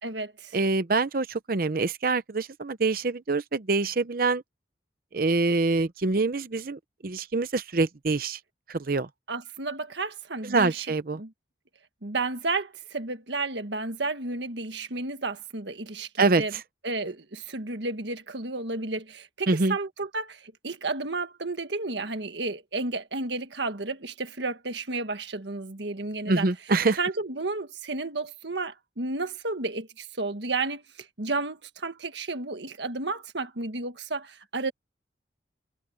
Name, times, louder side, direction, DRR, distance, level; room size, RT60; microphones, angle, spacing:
voice 1, 0.0-0.6 9.3-10.9 11.2-11.3 12.0-16.5 16.8-26.5 27.0-30.8 31.2-34.7, right 3 dB, 70° right, 1.6 m, -32 dB
voice 2, 0.5-4.4 5.1-8.4 8.7-9.1 10.4-11.2 16.2-16.4 19.5-19.8 26.3-27.0, right 3 dB, 50° right, 0.7 m, -25 dB
head